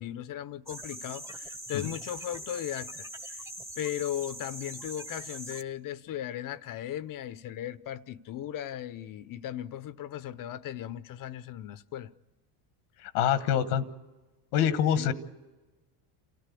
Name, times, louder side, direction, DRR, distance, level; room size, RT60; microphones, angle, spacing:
voice 1, 0.0-3.5 3.8-12.1 14.9-15.1, left 11 dB, 45° left, 0.8 m, -37 dB
sound 1, 0.7-5.6, right 1 dB, 5° right, 1.0 m, -42 dB
voice 2, 13.0-13.8 14.5-15.1, left 9 dB, 90° left, 1.4 m, -25 dB
28.0 x 14.5 x 8.4 m
supercardioid pair, 100°, 46 cm